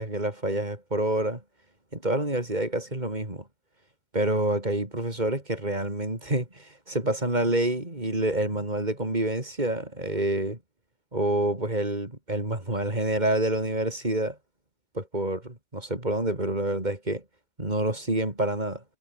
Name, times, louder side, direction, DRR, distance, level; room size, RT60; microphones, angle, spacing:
voice 1, 0.0-1.4 1.9-3.4 4.1-10.6 11.1-14.4 14.9-17.2 17.6-18.8, right 1 dB, 20° right, 5.2 m, -27 dB
omnidirectional pair, 2.0 m